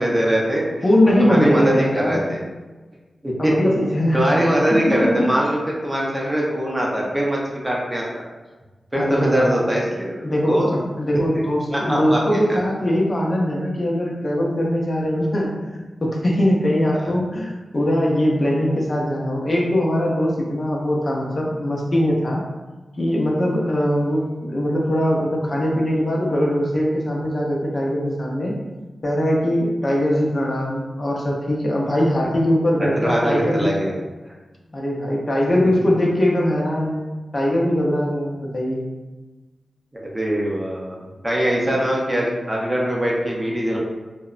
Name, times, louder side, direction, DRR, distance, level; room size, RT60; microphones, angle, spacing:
voice 1, 0.0-0.7 1.2-2.4 3.2-3.5 4.1-8.2 8.9-10.7 11.7-12.2 17.0-17.1 32.2-32.3 32.8-33.9 35.6-35.7 39.9-43.8, right 1 dB, 15° right, -3 dB, 0.5 m, -22 dB
voice 2, 0.8-2.3 3.4-4.2 4.9-5.1 9.0-9.6 10.2-22.4 23.0-28.6 29.0-33.7 34.7-37.0 37.3-38.8, equal, 40° left, -2 dB, 0.4 m, -21 dB
2.7 x 2.0 x 2.4 m, 1.2 s
wide cardioid pair, 95°, 0 cm